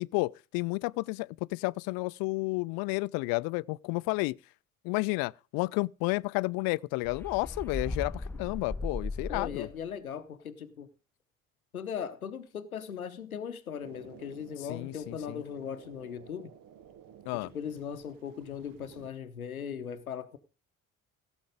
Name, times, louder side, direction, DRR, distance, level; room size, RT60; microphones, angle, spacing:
voice 1, 0.0-4.4 4.8-9.7 14.7-15.4 17.3-17.5, left 25 dB, 55° left, 0.5 m, -31 dB
sound 1, 7.0-9.8, left 2 dB, 5° left, 0.6 m, -37 dB
voice 2, 9.3-10.9 11.7-16.5 17.3-20.4, left 7 dB, 90° left, 0.8 m, -39 dB
sound 2, 13.8-19.1, right 9 dB, 50° right, 1.1 m, -53 dB
16.5 x 7.2 x 5.1 m
figure-of-eight pair, 50°, 42 cm